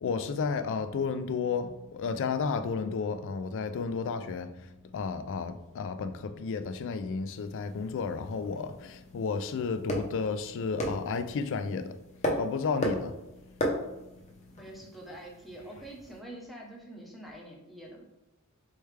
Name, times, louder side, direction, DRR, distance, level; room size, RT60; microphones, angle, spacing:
voice 1, 0.0-12.0 12.4-13.1, left 5 dB, 60° left, 0.4 m, -32 dB
sound 1, 7.3-16.2, equal, 30° left, 0.7 m, -37 dB
voice 2, 14.6-18.0, right 1 dB, ahead, 0.8 m, -45 dB
4.4 x 3.3 x 3.2 m
head